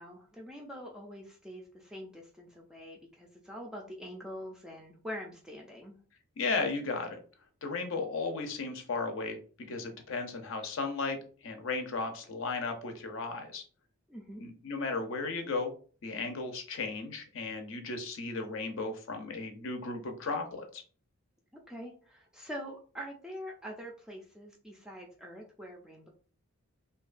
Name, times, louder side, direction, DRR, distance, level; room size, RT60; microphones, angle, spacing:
voice 1, 0.0-6.0 14.1-14.4 21.5-26.1, equal, 5° right, -1 dB, 0.3 m, -44 dB
voice 2, 6.4-7.2 7.6-9.4 9.7-13.6 14.4-15.7 16.0-20.8, left 3 dB, 60° left, 5 dB, 0.5 m, -35 dB
2.7 x 2.2 x 2.4 m, 0.40 s
head